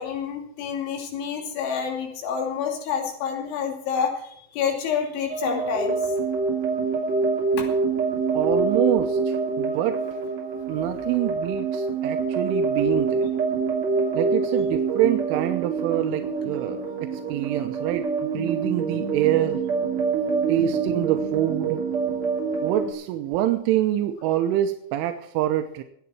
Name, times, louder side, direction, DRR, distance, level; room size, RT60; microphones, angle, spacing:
voice 1, 0.0-6.0 7.6-7.7, left 7 dB, 75° left, 1 dB, 4.9 m, -28 dB
sound 1, 5.3-22.9, right 4 dB, 40° right, 3.5 m, -26 dB
voice 2, 8.3-10.0 10.7-13.3 14.1-16.8 17.1-18.0 18.3-19.6 20.5-21.8 22.6-25.8, right 12 dB, 90° right, 6 dB, 3.3 m, -26 dB
24.0 x 8.6 x 4.4 m, 0.68 s
omnidirectional pair, 5.5 m